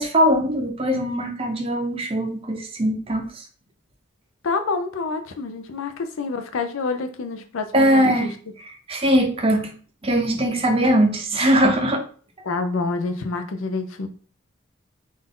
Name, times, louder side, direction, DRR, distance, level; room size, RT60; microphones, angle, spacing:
voice 1, 0.0-3.3 7.7-8.3 8.9-9.7 10.0-12.0, equal, 25° right, 4 dB, 0.6 m, -20 dB
voice 2, 4.4-8.3 12.4-14.1, left 3 dB, 70° left, 7 dB, 0.5 m, -27 dB
3.9 x 2.5 x 3.6 m, 0.42 s
head